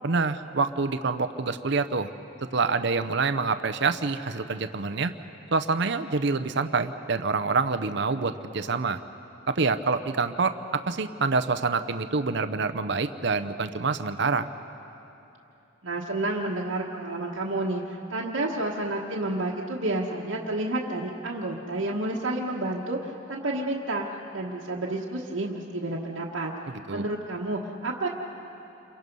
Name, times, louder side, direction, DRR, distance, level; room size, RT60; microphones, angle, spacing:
voice 1, 0.0-2.1 2.5-5.1 5.5-9.0 9.5-14.5 26.9-27.0, right 4 dB, 60° right, 10 dB, 0.7 m, -26 dB
voice 2, 15.8-24.0 24.3-26.5 26.9-28.1, right 2 dB, 85° right, -4 dB, 1.4 m, -30 dB
28.5 x 23.5 x 5.4 m, 2.9 s
head